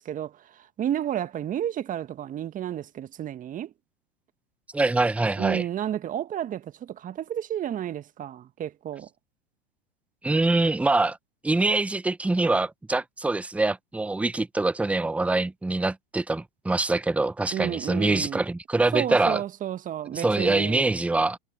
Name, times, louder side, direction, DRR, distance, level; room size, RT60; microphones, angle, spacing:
voice 1, 0.0-3.7 5.4-9.1 17.5-18.5 18.9-20.9, right 11 dB, 25° right, 1.7 m, -31 dB
voice 2, 4.7-5.6 10.2-11.2 11.4-19.4 20.1-21.4, right 2 dB, 5° right, 0.9 m, -24 dB
hypercardioid pair, 105°, 29 cm